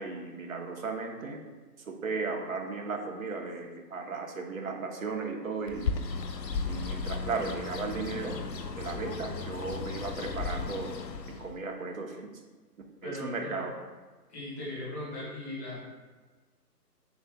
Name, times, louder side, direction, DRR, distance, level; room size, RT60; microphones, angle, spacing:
voice 1, 0.0-1.4 1.9-5.9 6.6-8.4 8.8-11.0 11.2-12.3 13.0-13.7, right 4 dB, 55° right, 2 dB, 1.1 m, -35 dB
Bird, 5.7-11.6, left 4 dB, 90° left, 0.8 m, -35 dB
voice 2, 13.0-13.6 14.3-15.8, left 1 dB, 10° left, -8 dB, 0.8 m, -38 dB
7.6 x 6.2 x 2.4 m, 1.3 s
figure-of-eight pair, 150°, 49 cm